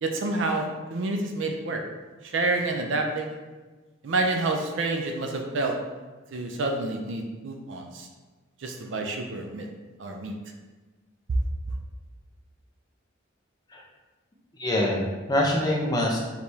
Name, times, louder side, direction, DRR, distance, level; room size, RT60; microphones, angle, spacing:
voice 1, 0.0-1.8 2.2-3.4 4.0-5.8 6.3-8.1 8.6-9.7 10.0-10.3, right 2 dB, 70° right, 3 dB, 0.5 m, -28 dB
voice 2, 14.6-16.2, left 1 dB, 20° left, -2 dB, 0.7 m, -24 dB
4.7 x 3.4 x 2.7 m, 1.3 s
head